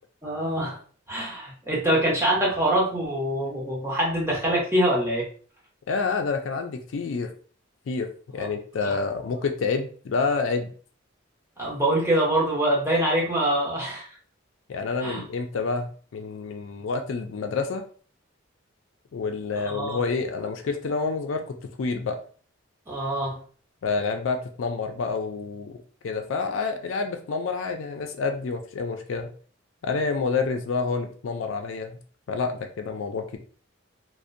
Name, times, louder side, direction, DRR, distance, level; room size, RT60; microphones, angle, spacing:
voice 1, 0.2-0.8 1.1-5.3 8.4-8.5 8.8-8.9 11.6-14.1 15.0-15.2 19.6-20.0 22.9-23.4, right 1 dB, 15° right, -5 dB, 0.8 m, -24 dB
voice 2, 5.9-7.3 7.9-10.7 14.7-17.8 19.1-22.2 23.8-25.8 26.0-29.3 29.8-32.0 32.3-33.4, left 4 dB, 70° left, 5 dB, 0.4 m, -28 dB
2.6 x 2.1 x 2.5 m, 0.43 s
head